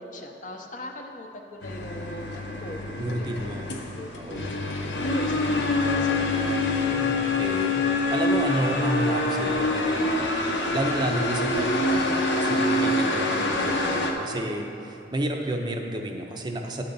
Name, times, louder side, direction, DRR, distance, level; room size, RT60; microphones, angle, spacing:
voice 1, 0.0-2.8 3.2-3.5 3.9-6.4, left 1 dB, 45° left, 3 dB, 0.6 m, -41 dB
sound 1, 1.6-14.1, left 2 dB, 85° left, 0.8 m, -25 dB
voice 2, 3.0-3.8 4.2-4.5 6.7-7.8 8.1-10.3 10.7-16.8, right 1 dB, 25° right, 2 dB, 0.5 m, -31 dB
10.0 x 3.9 x 6.9 m, 2.7 s
head